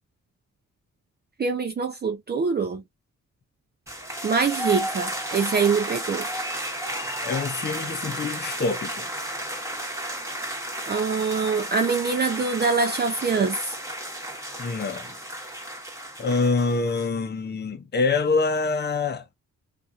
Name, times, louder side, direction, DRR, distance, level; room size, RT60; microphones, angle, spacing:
voice 1, 1.4-2.8 4.2-6.3 10.9-13.8, right 5 dB, 30° right, 0.5 m, -24 dB
sound 1, 3.9-17.1, right 1 dB, 10° right, 1.2 m, -33 dB
voice 2, 7.2-9.1 14.6-15.2 16.2-19.2, left 4 dB, 35° left, 0.7 m, -25 dB
2.8 x 2.5 x 2.4 m
cardioid pair, 60°, 31 cm